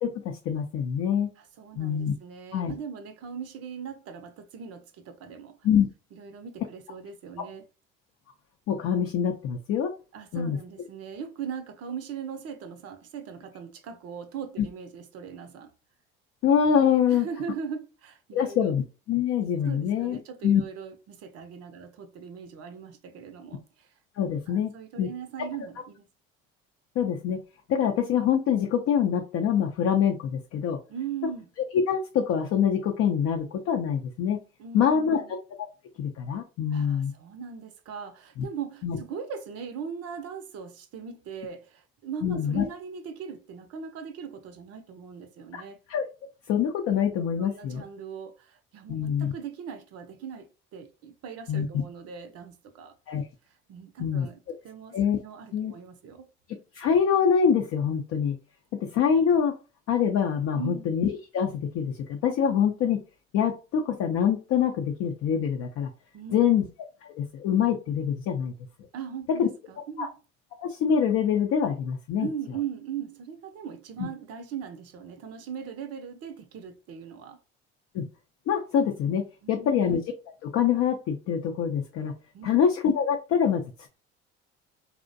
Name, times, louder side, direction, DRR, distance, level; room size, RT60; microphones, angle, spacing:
voice 1, 0.0-1.3 1.8-2.1 2.5-2.7 5.6-5.9 8.7-9.9 10.3-10.6 16.4-17.3 18.3-20.2 20.4-20.6 24.2-24.7 25.0-25.1 27.0-27.4 27.7-30.8 31.9-34.4 34.7-35.2 35.6-35.7 36.0-37.1 38.4-38.5 38.8-39.0 42.2-42.6 45.5-45.6 45.9-46.0 46.5-47.8 48.9-49.3 51.5-51.7 53.1-53.2 54.0-54.3 54.9-55.2 55.5-55.7 56.7-58.4 58.8-59.5 59.9-63.0 63.3-65.9 66.3-66.7 67.2-68.5 69.4-69.5 70.0-70.1 70.6-72.3 74.0-74.1 77.9-78.1 78.5-80.0 80.4-82.1 82.4-83.9, left 8 dB, 55° left, 0.5 m, -25 dB
voice 2, 1.4-5.6 6.1-7.7 10.1-15.7 17.1-18.6 19.6-23.9 24.5-26.1 30.9-31.5 34.6-35.3 36.7-45.8 47.3-53.0 53.5-54.4 54.6-55.0 55.2-56.2 60.5-60.9 66.1-66.4 68.9-70.1 72.2-77.4 79.4-79.8 82.3-82.5, right 7 dB, 55° right, 0.5 m, -39 dB
2.5 x 2.1 x 2.5 m
hypercardioid pair, 65°, 30 cm